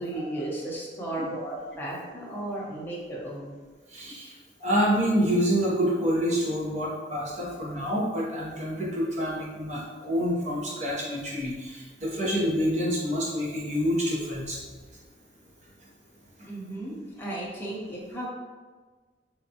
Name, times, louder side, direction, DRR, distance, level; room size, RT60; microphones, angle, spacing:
voice 1, 0.0-3.6 7.4-7.5 16.5-18.3, right 1 dB, 10° left, -5 dB, 0.7 m, -35 dB
voice 2, 3.9-14.6, equal, 40° right, -4 dB, 0.9 m, -27 dB
3.5 x 3.1 x 2.8 m, 1.4 s
head